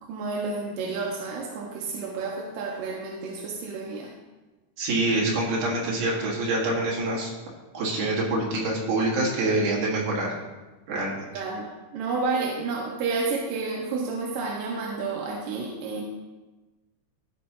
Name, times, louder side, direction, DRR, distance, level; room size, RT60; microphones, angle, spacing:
voice 1, 0.1-4.1 11.3-16.0, right 4 dB, 85° right, -1 dB, 2.5 m, -30 dB
voice 2, 4.8-7.3 7.7-10.3 10.9-11.3, right 2 dB, 70° right, -4 dB, 3.1 m, -26 dB
14.5 x 5.4 x 2.8 m, 1.2 s
omnidirectional pair, 3.8 m